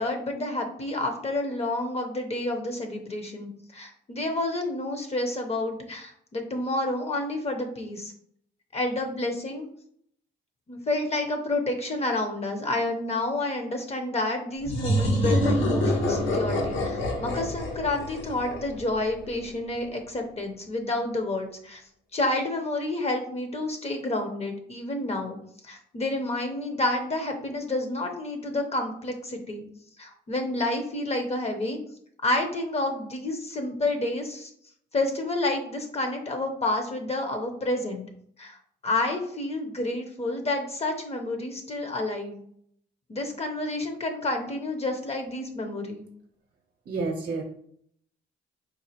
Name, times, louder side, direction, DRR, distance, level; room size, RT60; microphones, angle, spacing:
voice 1, 0.0-8.1 8.7-9.7 10.7-21.8 22.1-25.4 25.6-29.6 30.0-31.8 32.2-34.5 34.9-38.1 38.4-38.6 38.8-42.4 43.1-46.0, left 2 dB, 30° left, 4 dB, 0.6 m, -29 dB
sound 1, 14.6-19.2, equal, 75° left, 1.0 m, -26 dB
voice 2, 46.9-47.4, right 3 dB, 50° right, 2 dB, 0.7 m, -29 dB
4.0 x 2.4 x 2.8 m, 0.65 s
cardioid pair, 90°, 20 cm